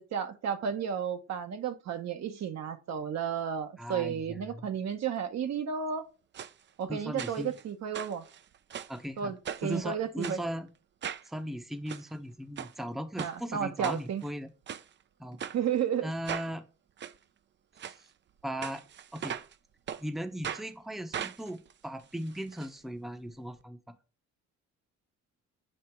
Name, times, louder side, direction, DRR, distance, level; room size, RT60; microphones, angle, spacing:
voice 1, 0.0-6.1 6.8-8.2 9.2-10.4 13.2-14.2 15.5-16.1, right 8 dB, 60° right, 0.9 m, -33 dB
voice 2, 3.8-4.7 6.9-7.5 8.9-9.3 9.6-10.7 11.2-14.5 15.2-15.4 16.0-16.6 18.4-18.8 19.1-19.4 20.0-23.8, equal, ahead, 0.7 m, -37 dB
sound 1, 6.3-6.5 7.2-7.6 7.9-9.0 9.4-9.8 10.2-10.4 11.0-11.3 11.7-12.0 12.6-12.7 13.2-13.3 13.8-14.3 14.7-14.8 15.4-15.6 16.2-16.5 17.0-17.1 17.8-18.0 18.6-19.5 19.9-20.0 20.4-20.7 21.1-22.7 23.0-23.1 23.3-23.4, right 8 dB, 40° right, 0.4 m, -39 dB
7.6 x 2.8 x 4.4 m
cardioid pair, 90°, 30 cm